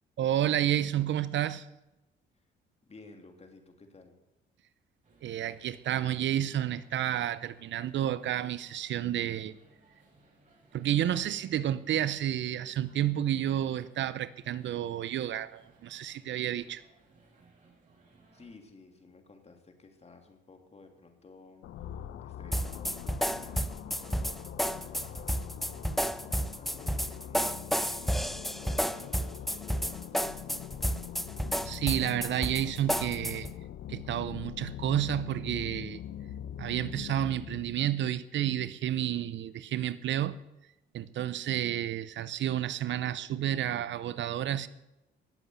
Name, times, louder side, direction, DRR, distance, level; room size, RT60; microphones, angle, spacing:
voice 1, 0.2-1.7 5.2-9.5 10.7-16.8 31.6-33.5 33.9-36.0 36.6-40.4 40.9-44.7, right 11 dB, 70° right, 0.7 m, -30 dB
voice 2, 2.8-4.2 18.3-25.9 26.2-30.5, left 3 dB, 30° left, 3.0 m, -55 dB
sound 1, 5.0-18.5, right 3 dB, 40° right, 6.1 m, -63 dB
sound 2, 21.6-37.8, left 10 dB, 75° left, 0.9 m, -43 dB
sound 3, 22.5-33.5, equal, ahead, 0.6 m, -31 dB
18.0 x 7.9 x 8.1 m
cardioid pair, 90°, 20 cm